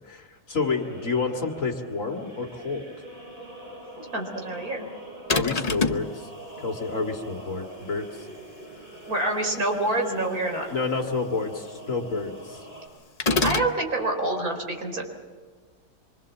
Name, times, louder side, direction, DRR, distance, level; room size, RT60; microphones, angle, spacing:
voice 1, 0.0-2.9 5.3-6.3 6.6-8.3 10.7-12.6, left 4 dB, 50° left, 3 dB, 2.5 m, -29 dB
sound 1, 0.5-12.9, right 1 dB, 25° right, 5.9 m, -43 dB
voice 2, 4.1-4.9 9.1-10.7 13.4-15.0, right 2 dB, 60° right, 2 dB, 4.8 m, -27 dB
sound 2, 5.3-6.1 13.2-13.8, left 3 dB, 30° left, 0.8 m, -24 dB
26.5 x 24.5 x 7.3 m, 1.4 s
omnidirectional pair, 1.8 m